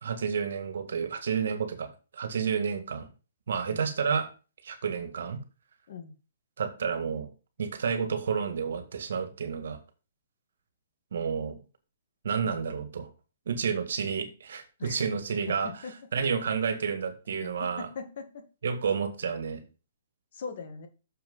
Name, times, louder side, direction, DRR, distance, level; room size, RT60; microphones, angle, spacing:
voice 1, 0.0-3.1 3.5-4.3 4.6-5.4 6.6-7.3 7.6-9.8 11.1-11.6 12.2-13.1 13.5-15.7 16.1-17.9 18.6-19.6, right 6 dB, 70° right, 8 dB, 1.8 m, -30 dB
voice 2, 15.6-15.9 17.4-18.4 20.3-20.9, left 5 dB, 55° left, 6 dB, 1.8 m, -41 dB
6.8 x 5.9 x 5.5 m, 0.33 s
hypercardioid pair, 160°, 0 cm